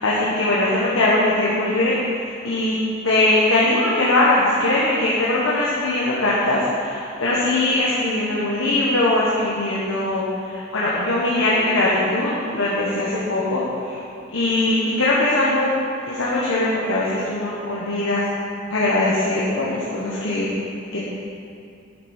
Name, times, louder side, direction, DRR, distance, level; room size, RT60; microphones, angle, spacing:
voice 1, 0.0-2.8 3.0-14.0 14.3-15.7 16.1-18.2 18.7-20.5 20.9-21.0, left 2 dB, 80° left, -7 dB, 1.4 m, -21 dB
10.0 x 7.9 x 4.5 m, 2.5 s
head